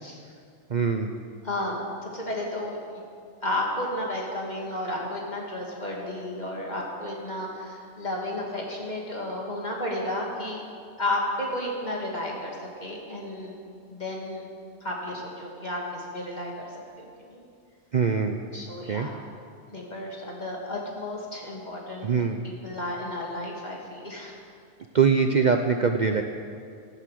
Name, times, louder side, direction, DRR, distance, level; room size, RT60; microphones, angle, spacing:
voice 1, 0.7-1.1 17.9-18.4 18.9-19.1 22.0-22.4 24.9-26.2, right 5 dB, 45° right, 5 dB, 0.7 m, -22 dB
voice 2, 1.4-1.8 2.1-2.8 3.4-10.6 11.0-13.5 13.9-14.4 14.8-16.7 17.0-17.4 18.5-19.1 19.7-22.1 22.4-24.4, left 1 dB, 35° left, -2 dB, 2.8 m, -32 dB
15.0 x 11.5 x 7.7 m, 2.3 s
omnidirectional pair, 1.2 m